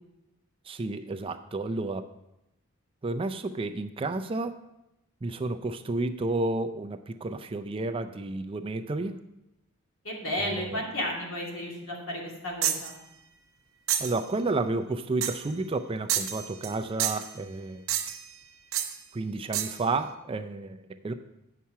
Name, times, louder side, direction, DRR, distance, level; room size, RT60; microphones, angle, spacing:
voice 1, 0.7-2.0 3.0-4.5 5.2-9.2 10.4-10.8 14.0-17.8 19.1-21.1, right 2 dB, 25° right, 8 dB, 0.4 m, -31 dB
voice 2, 10.0-12.9, left 1 dB, 70° left, -2 dB, 2.5 m, -33 dB
sound 1, 12.6-12.9 13.9-14.2 15.2-15.5 16.1-16.7 17.0-17.3 17.9-18.3 18.7-18.9 19.5-19.8, right 10 dB, 65° right, 0.8 m, -29 dB
8.4 x 5.9 x 5.5 m, 0.89 s
head